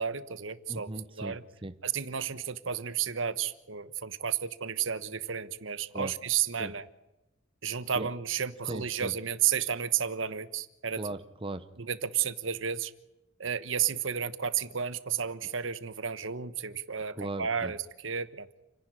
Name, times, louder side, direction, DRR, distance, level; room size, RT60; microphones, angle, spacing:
voice 1, 0.0-0.9 1.1-1.4 1.8-6.9 7.6-11.0 11.8-12.9 13.4-18.5, right 8 dB, 75° right, 1.2 m, -32 dB
voice 2, 0.7-1.8 5.9-6.1 6.6-6.7 7.9-8.1 8.6-9.1 11.0-11.7 17.2-17.7, right 2 dB, 25° right, 0.9 m, -38 dB
29.5 x 11.0 x 9.8 m
head